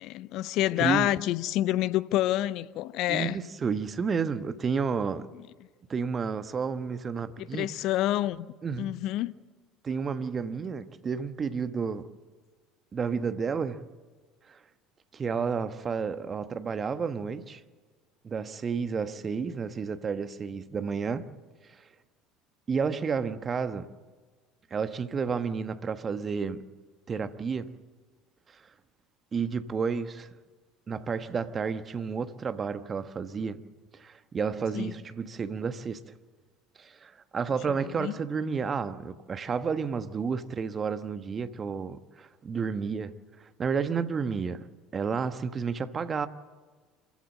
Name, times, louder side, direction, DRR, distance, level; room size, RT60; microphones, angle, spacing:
voice 1, 0.0-3.4 7.4-8.5 8.8-9.3 34.7-34.9 37.7-38.1, left 14 dB, 55° left, 0.6 m, -28 dB
voice 2, 0.8-1.1 3.1-5.3 5.9-7.7 8.6-8.9 9.8-12.1 12.9-13.9 14.5-14.6 15.1-17.6 18.2-21.3 21.7-21.8 22.7-23.9 24.7-26.6 27.1-27.8 29.3-30.3 30.9-33.6 33.9-36.0 36.8-46.3, right 5 dB, 30° right, 1.2 m, -31 dB
26.5 x 15.0 x 7.6 m
figure-of-eight pair, 65°, 0 cm